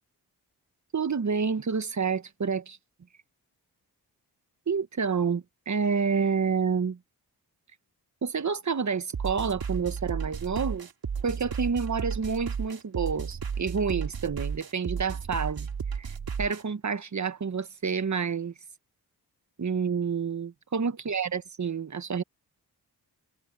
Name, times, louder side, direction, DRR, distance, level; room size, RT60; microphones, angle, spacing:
voice 1, 0.9-2.8 4.7-7.0 8.2-10.9 11.2-15.7 16.0-18.5 19.6-22.2, right 5 dB, 45° right, 1.4 m, -29 dB
sound 1, 9.1-16.6, right 6 dB, 65° right, 2.4 m, -33 dB
cardioid pair, 60°, 39 cm